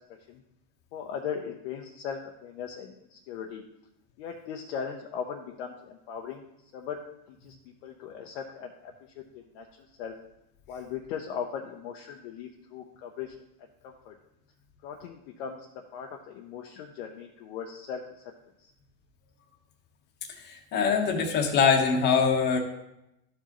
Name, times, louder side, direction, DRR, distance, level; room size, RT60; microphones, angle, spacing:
voice 1, 0.9-3.6 4.2-6.4 6.7-7.0 7.4-7.5 7.8-9.2 9.5-10.1 10.7-13.3 13.8-14.1 14.8-15.7 15.9-18.3 18.6-18.7, left 7 dB, 40° left, 2 dB, 0.6 m, -38 dB
voice 2, 20.4-22.6, left 6 dB, 20° left, 1 dB, 1.0 m, -23 dB
13.0 x 4.8 x 2.9 m, 0.88 s
supercardioid pair, 145°, 50 cm